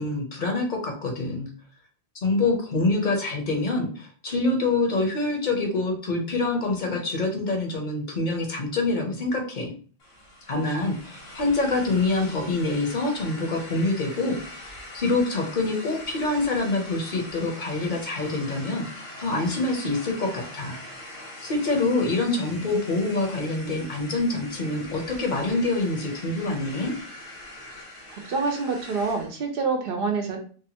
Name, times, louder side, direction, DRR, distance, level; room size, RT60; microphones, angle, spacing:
voice 1, 0.0-1.5 2.2-9.7 10.5-20.8 21.4-26.9, left 2 dB, 55° left, 1 dB, 0.7 m, -26 dB
sound 1, 10.0-29.3, left 1 dB, 80° left, 1.2 m, -42 dB
voice 2, 28.1-30.4, right 4 dB, 70° right, 4 dB, 0.7 m, -27 dB
2.7 x 2.1 x 2.8 m, 0.41 s
omnidirectional pair, 1.0 m